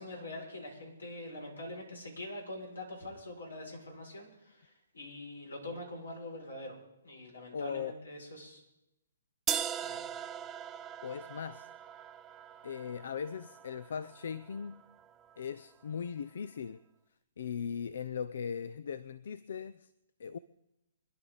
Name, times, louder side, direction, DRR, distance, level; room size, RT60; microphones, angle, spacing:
voice 1, 0.0-6.8 7.0-8.6 9.8-10.1, left 1 dB, 90° left, 6.2 m, -44 dB
voice 2, 7.5-7.9 11.0-11.7 12.6-14.8 15.4-16.8 17.4-19.9 20.2-20.4, left 7 dB, 65° left, 0.6 m, -39 dB
sound 1, 9.5-15.4, right 9 dB, 20° right, 0.7 m, -40 dB
25.0 x 11.0 x 4.1 m
hypercardioid pair, 135°, 0 cm